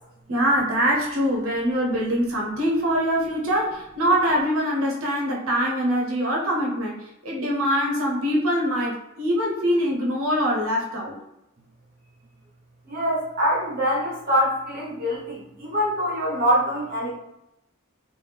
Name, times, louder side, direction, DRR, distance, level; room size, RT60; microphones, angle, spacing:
voice 1, 0.3-11.2, equal, 75° right, -2 dB, 0.8 m, -23 dB
voice 2, 12.9-17.1, equal, 45° right, -5 dB, 1.0 m, -24 dB
3.1 x 2.5 x 3.3 m, 0.86 s
head